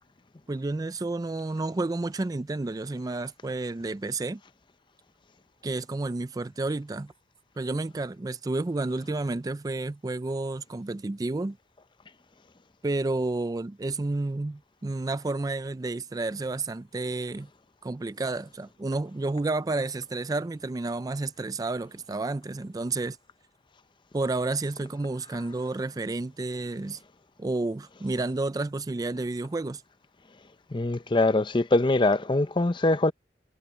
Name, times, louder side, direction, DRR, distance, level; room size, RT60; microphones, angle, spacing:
voice 1, 0.5-4.4 5.6-7.1 7.6-11.6 12.8-17.5 17.8-23.2 24.1-27.0 27.4-29.8, right 2 dB, 20° right, 0.4 m, -30 dB
voice 2, 30.7-33.1, left 2 dB, 25° left, 0.6 m, -23 dB
head